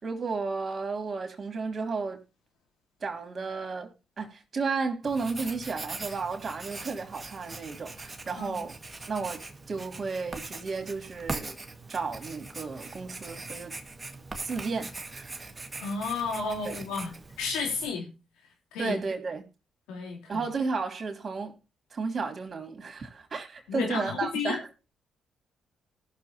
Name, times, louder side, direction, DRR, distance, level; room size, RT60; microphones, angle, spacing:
voice 1, 0.0-2.2 3.0-8.7 9.1-11.6 11.9-13.8 14.4-15.4 16.6-16.8 18.8-19.5 20.3-21.6 21.9-24.7, right 4 dB, 45° right, 3.1 m, -33 dB
Writing, 5.0-17.9, right 3 dB, 25° right, 1.8 m, -41 dB
voice 2, 15.8-17.1 17.4-18.1 18.7-19.0 19.9-20.5 23.7-24.6, left 4 dB, 85° left, 3.5 m, -32 dB
19.0 x 6.6 x 2.8 m
supercardioid pair, 50°, 0 cm